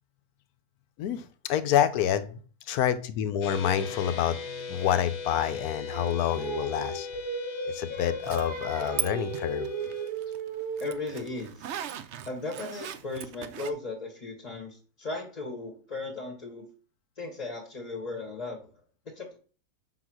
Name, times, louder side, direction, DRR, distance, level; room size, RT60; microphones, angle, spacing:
voice 1, 1.0-2.4 2.7-4.4 4.7-7.1 7.7-9.7, left 10 dB, 85° left, 1.2 m, -27 dB
sound 1, 3.4-10.1, left 4 dB, 55° left, 1.1 m, -39 dB
Singing, 5.9-11.1, right 3 dB, 30° right, 0.6 m, -36 dB
Zipper (clothing), 8.2-9.1 9.3-13.7, right 10 dB, 65° right, 0.7 m, -38 dB
voice 2, 10.8-11.7 12.2-16.7 17.2-18.7 19.1-19.4, left 2 dB, 30° left, 1.1 m, -36 dB
5.7 x 4.0 x 6.1 m
omnidirectional pair, 1.6 m